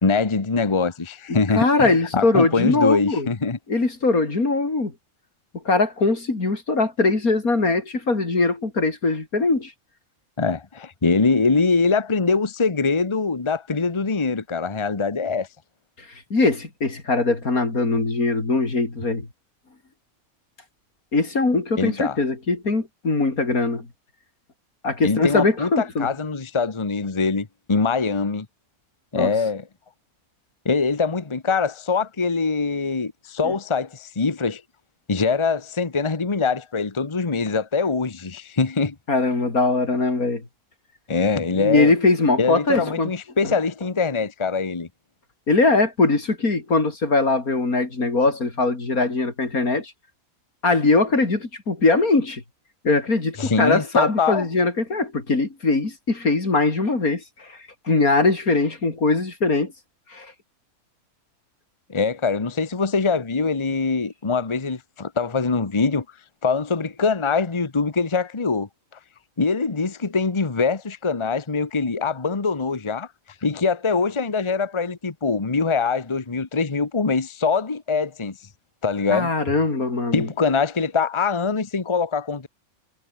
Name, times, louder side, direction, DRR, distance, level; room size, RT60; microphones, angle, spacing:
voice 1, 0.0-3.6 10.4-15.5 21.8-22.2 25.0-28.5 29.1-29.7 30.6-34.6 35.1-38.9 41.1-41.9 42.4-44.9 53.4-54.5 61.9-66.0 66.4-68.7 69.4-73.1 73.4-78.4 78.8-79.3 80.1-82.5, left 4 dB, 20° left, 1.2 m, -23 dB
voice 2, 1.3-3.3 3.7-4.9 5.6-9.7 16.3-19.3 21.1-23.9 24.8-26.1 29.2-29.3 39.1-40.4 41.5-43.1 45.5-49.9 50.6-52.4 52.8-57.6 57.9-59.7 60.1-60.3 79.1-80.3, left 3 dB, 85° left, 4.6 m, -21 dB
omnidirectional pair, 1.5 m